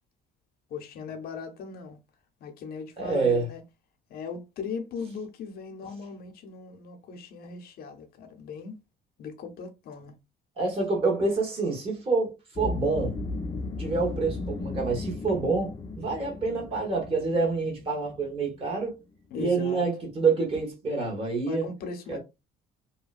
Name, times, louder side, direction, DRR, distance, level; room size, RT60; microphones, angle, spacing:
voice 1, 0.7-2.0 2.4-3.6 4.1-8.8 9.2-10.1 19.3-19.9 21.5-22.2, left 5 dB, 65° left, 0.7 m, -38 dB
voice 2, 3.0-3.5 10.6-13.2 13.8-19.0 19.4-21.7 22.1-22.2, right 4 dB, 35° right, 1.3 m, -27 dB
sound 1, 12.5-18.8, left 3 dB, 25° left, 0.4 m, -35 dB
2.8 x 2.2 x 2.4 m
cardioid pair, 110°, 17 cm